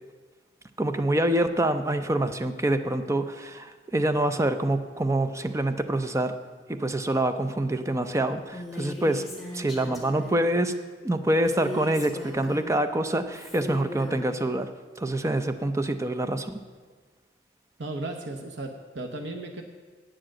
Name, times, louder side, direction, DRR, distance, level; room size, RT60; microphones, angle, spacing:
voice 1, 0.8-6.3 6.7-9.2 9.5-10.7 11.0-14.7 15.0-16.6, right 1 dB, 15° right, 9 dB, 0.5 m, -26 dB
Female speech woman speaking, 8.5-10.4 11.5-12.9 13.3-14.3, left 1 dB, ahead, 1.8 m, -39 dB
voice 2, 17.8-19.6, right 2 dB, 70° right, 3 dB, 0.9 m, -35 dB
8.7 x 7.6 x 7.6 m, 1.4 s
head